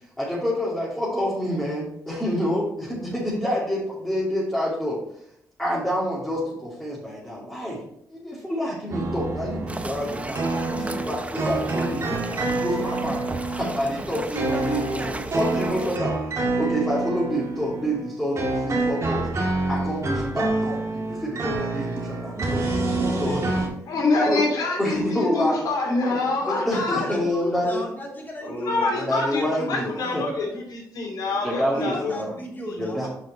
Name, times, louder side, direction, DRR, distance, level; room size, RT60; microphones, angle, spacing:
voice 1, 0.2-5.0 5.6-7.8 8.1-12.1 12.4-16.2 16.6-23.6 24.3-24.4 24.8-25.6 26.1-26.2 26.5-27.8 28.4-30.2 31.4-32.3 32.8-33.1, equal, 10° left, -7 dB, 2.8 m, -28 dB
sound 1, 8.9-23.7, right 2 dB, 50° right, 2.4 m, -27 dB
sound 2, 9.7-16.0, right 2 dB, 20° right, 0.7 m, -35 dB
voice 2, 22.9-23.4 26.4-30.2 31.7-33.0, left 1 dB, 30° left, 0 dB, 2.6 m, -35 dB
voice 3, 23.9-27.0 28.6-32.1, left 3 dB, 75° left, 0 dB, 2.7 m, -25 dB
6.8 x 5.6 x 4.1 m, 0.75 s
cardioid pair, 65°, 7 cm